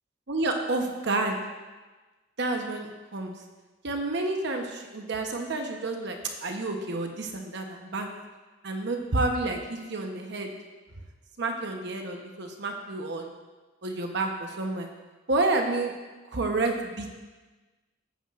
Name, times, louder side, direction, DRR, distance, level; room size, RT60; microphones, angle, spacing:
voice 1, 0.3-1.4 2.4-3.3 3.8-8.1 8.6-10.5 11.4-13.3 13.8-14.9 15.3-15.9 16.3-17.2, right 2 dB, 65° right, 3 dB, 1.0 m, -29 dB
13.5 x 9.6 x 2.5 m, 1.2 s
head